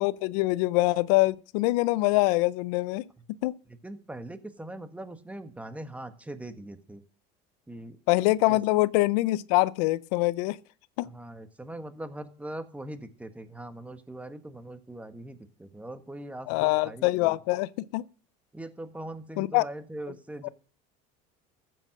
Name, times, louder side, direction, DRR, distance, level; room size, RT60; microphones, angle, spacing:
voice 1, 0.0-3.0 3.4-3.6 8.1-10.6 11.0-11.1 16.5-18.0 19.4-19.6 20.4-20.5, left 20 dB, 80° left, 0.6 m, -24 dB
voice 2, 3.7-7.0 7.7-8.0 8.5-8.6 11.0-17.4 18.5-20.5, right 1 dB, 5° right, 1.5 m, -41 dB
14.5 x 7.7 x 6.5 m
supercardioid pair, 120°, 19 cm